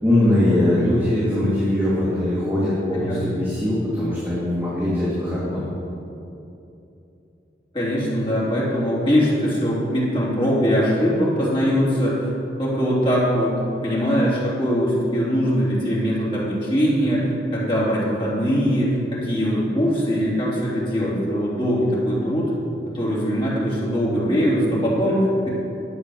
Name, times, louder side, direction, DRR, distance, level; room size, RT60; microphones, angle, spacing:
voice 1, 0.0-5.7, left 1 dB, 10° right, -10 dB, 2.4 m, -21 dB
voice 2, 7.7-12.3 12.6-13.5 13.8-22.5 22.8-25.5, equal, 30° left, -7 dB, 3.2 m, -21 dB
11.5 x 8.0 x 6.5 m, 2.8 s
head